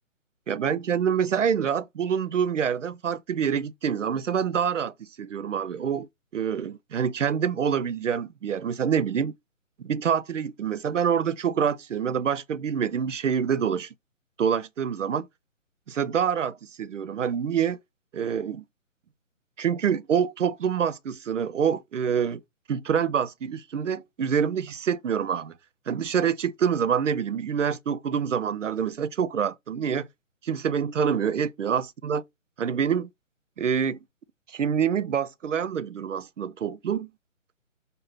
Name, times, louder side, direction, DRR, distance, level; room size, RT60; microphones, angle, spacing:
voice 1, 0.5-6.1 6.3-9.3 9.8-13.9 14.4-15.3 15.9-17.8 18.1-18.6 19.6-22.4 22.7-25.5 25.9-30.1 30.4-32.2 32.6-33.1 33.6-34.0 34.5-37.1, right 7 dB, 65° right, 0.6 m, -26 dB
6.7 x 2.8 x 5.7 m
figure-of-eight pair, 150°, 41 cm